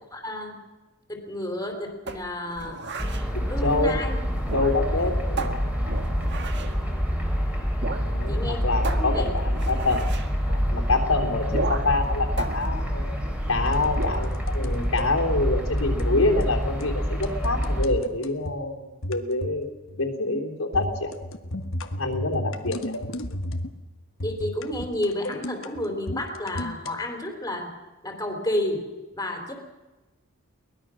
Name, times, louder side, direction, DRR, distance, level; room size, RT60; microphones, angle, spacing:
voice 1, 0.1-0.6 1.1-2.8 3.5-4.2 4.9-5.1 8.3-8.6 9.0-9.3 24.2-27.7 28.0-29.5, left 1 dB, 15° left, 3 dB, 3.5 m, -31 dB
sound 1, 2.1-3.3 4.4-5.0 5.4-6.8 7.8-8.1 8.4-8.5 8.8-10.3 11.5-12.0 12.4-13.5 13.9-14.3, right 3 dB, 50° right, 1.6 m, -34 dB
sound 2, 3.0-17.9, equal, 5° right, 3.6 m, -27 dB
voice 2, 3.3-4.0 4.5-6.1 8.0-10.1 10.5-13.0 13.5-21.1 22.0-22.9, left 2 dB, 75° left, 0 dB, 3.4 m, -26 dB
sound 3, 13.7-15.1 15.8-16.1 16.4-16.6 16.8-16.9 17.2-18.6 19.0-19.6 19.9-20.2 20.7-23.8 24.2-26.9, left 1 dB, 60° left, 1.4 m, -34 dB
22.5 x 19.5 x 6.3 m, 1.2 s
head